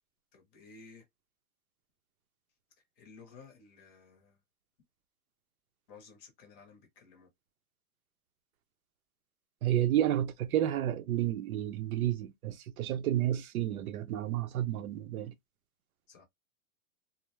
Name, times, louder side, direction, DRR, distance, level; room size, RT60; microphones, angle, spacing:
voice 1, 0.3-1.0 3.0-4.4 5.9-7.3 16.1-16.2, left 4 dB, 20° left, 0.6 m, -55 dB
voice 2, 9.6-15.3, right 12 dB, 85° right, 0.6 m, -31 dB
2.4 x 2.0 x 2.9 m
supercardioid pair, 155°, 42 cm